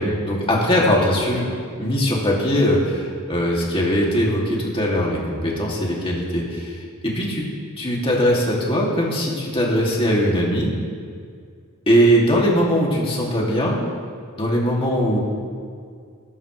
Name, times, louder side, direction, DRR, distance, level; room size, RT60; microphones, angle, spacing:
voice 1, 0.0-1.4 1.8-7.5 7.8-10.7 11.9-13.8 14.4-15.2, equal, 25° left, -3 dB, 2.5 m, -20 dB
21.0 x 11.0 x 3.2 m, 2.2 s
head